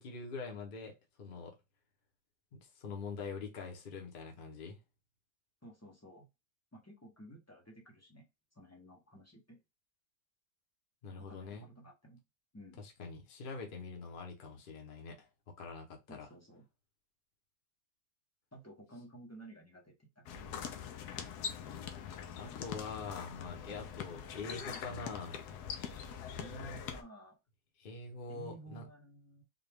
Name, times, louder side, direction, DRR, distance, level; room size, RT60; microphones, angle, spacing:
voice 1, 0.0-1.6 2.5-4.8 11.0-11.6 13.0-15.3 15.6-16.3 22.4-25.4 27.8-28.9, left 4 dB, 45° left, 0.8 m, -44 dB
voice 2, 5.6-6.3 6.7-8.3 8.5-9.6 11.2-12.2 12.5-12.8 16.1-16.7 18.5-20.4 26.3-27.4 28.3-29.4, right 1 dB, 20° left, 0.4 m, -53 dB
sound 1, 20.3-27.0, left 8 dB, 80° left, 1.2 m, -43 dB
3.9 x 2.3 x 3.4 m
omnidirectional pair, 1.7 m